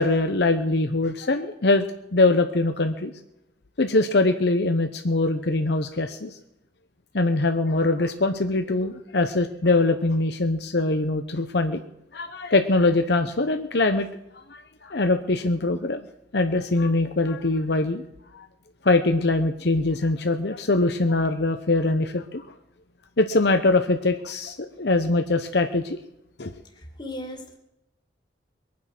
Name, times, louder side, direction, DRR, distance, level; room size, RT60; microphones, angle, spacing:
voice 1, 0.0-1.9 2.1-3.1 3.8-6.4 7.1-11.8 12.1-14.1 14.5-16.0 16.3-18.0 18.3-18.5 18.8-22.4 23.2-26.0 26.4-26.5, left 2 dB, 60° left, 7 dB, 0.9 m, -22 dB
voice 2, 26.7-27.6, left 1 dB, 25° left, 3 dB, 2.3 m, -37 dB
22.5 x 9.6 x 6.1 m, 0.87 s
head